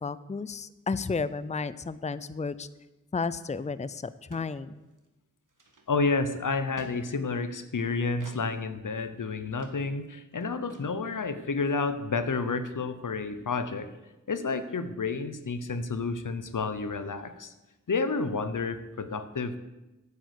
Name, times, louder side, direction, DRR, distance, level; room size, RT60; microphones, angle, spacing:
voice 1, 0.0-2.7 3.1-4.8, left 4 dB, 20° left, 16 dB, 0.5 m, -32 dB
sound 1, 3.6-3.7 3.9-4.0 4.3-4.5 4.9-5.1 5.5-6.1 6.8-6.9 8.2-8.4 9.0-9.1 9.6-9.8 10.0-10.1 10.3-10.4 10.7-10.9, right 3 dB, 80° right, 1.8 m, -50 dB
voice 2, 5.9-13.9 14.3-17.5 17.9-19.6, left 4 dB, 80° left, 11 dB, 1.0 m, -30 dB
9.4 x 8.5 x 8.3 m, 1.1 s
cardioid pair, 45°, 31 cm